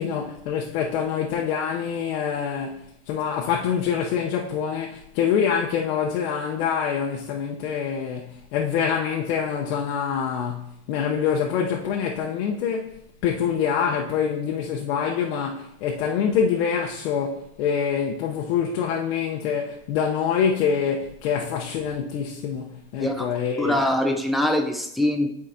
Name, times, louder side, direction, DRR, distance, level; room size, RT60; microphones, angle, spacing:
voice 1, 0.0-13.0 13.2-23.8, left 7 dB, 75° left, 0.8 m, -25 dB
voice 2, 23.0-23.3 23.6-25.3, left 1 dB, ahead, 0.5 m, -23 dB
10.0 x 4.8 x 2.7 m
supercardioid pair, 135°, 31 cm